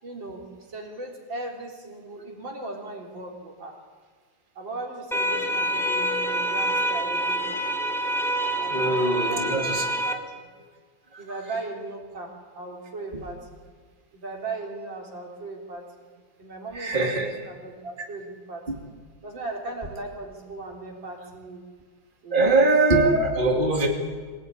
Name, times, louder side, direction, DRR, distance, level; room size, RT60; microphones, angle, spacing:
voice 1, 0.0-3.7 4.6-7.6 8.6-9.7 10.0-10.2 11.2-13.4 14.1-16.1 16.4-18.6 19.2-21.6 22.2-22.6, right 2 dB, 75° right, -1 dB, 4.6 m, -37 dB
sound 1, 5.1-10.1, right 1 dB, ahead, 1.6 m, -26 dB
voice 2, 8.7-9.8 11.1-11.3 13.1-13.2 16.7-17.3 18.7-18.8 22.3-23.9, right 2 dB, 25° right, 1 dB, 3.0 m, -22 dB
23.5 x 18.5 x 9.9 m, 1.5 s
omnidirectional pair, 2.1 m